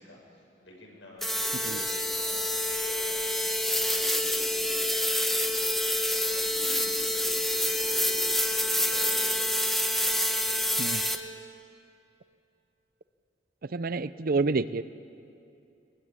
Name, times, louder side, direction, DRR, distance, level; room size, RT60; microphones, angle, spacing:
voice 1, 0.0-5.8 6.1-9.6, left 1 dB, 85° left, -1 dB, 6.8 m, -47 dB
sound 1, 1.2-11.2, left 1 dB, ahead, 1.1 m, -27 dB
voice 2, 13.6-14.8, right 3 dB, 50° right, 15 dB, 0.6 m, -28 dB
21.0 x 20.5 x 9.7 m, 2.6 s
head